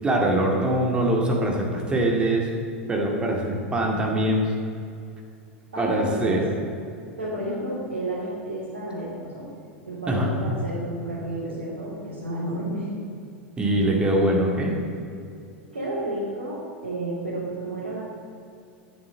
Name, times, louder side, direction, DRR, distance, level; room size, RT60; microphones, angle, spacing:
voice 1, 0.0-2.5 2.9-4.4 5.8-6.5 10.1-10.3 13.6-14.8, right 1 dB, 15° right, -1 dB, 2.2 m, -23 dB
voice 2, 5.7-6.6 7.2-9.5 9.8-12.9 15.7-18.0, right 1 dB, 70° right, -8 dB, 2.8 m, -31 dB
7.8 x 7.6 x 7.3 m, 2.5 s
figure-of-eight pair, 90°, 6 cm